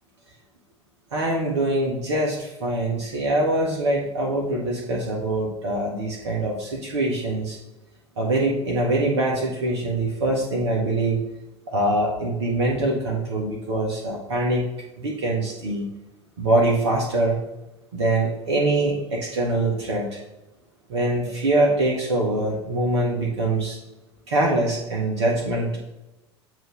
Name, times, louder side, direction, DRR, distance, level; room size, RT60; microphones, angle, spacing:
voice 1, 1.1-7.6 8.2-11.2 11.7-14.6 15.0-15.8 16.4-17.4 17.9-20.2 20.9-23.8 24.3-25.8, right 2 dB, 75° right, -1 dB, 1.1 m, -23 dB
7.5 x 2.7 x 5.3 m, 0.99 s
figure-of-eight pair, 75°, 15 cm